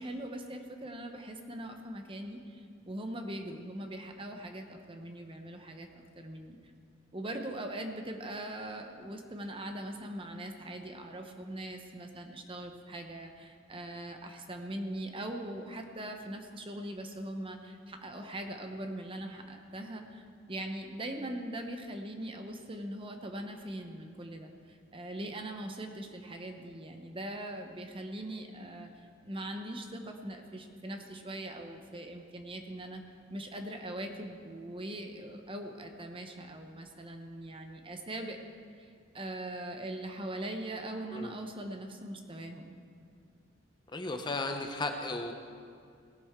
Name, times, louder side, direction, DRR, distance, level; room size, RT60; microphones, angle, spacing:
voice 1, 0.0-6.6 7.1-33.0 33.3-38.4 38.8-42.8, right 1 dB, 25° right, 4 dB, 0.9 m, -41 dB
voice 2, 43.9-45.3, left 2 dB, 20° left, 4 dB, 0.8 m, -35 dB
18.0 x 11.0 x 3.7 m, 2.2 s
head